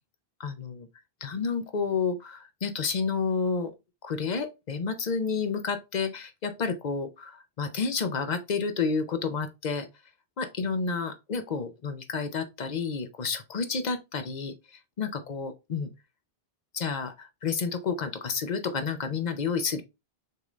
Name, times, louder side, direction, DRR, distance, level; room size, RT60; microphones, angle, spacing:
voice 1, 0.4-0.9 1.2-3.7 4.0-9.9 10.4-14.5 15.0-15.9 16.7-19.8, left 5 dB, 50° left, 0.7 m, -30 dB
6.6 x 2.6 x 3.1 m
omnidirectional pair, 1.1 m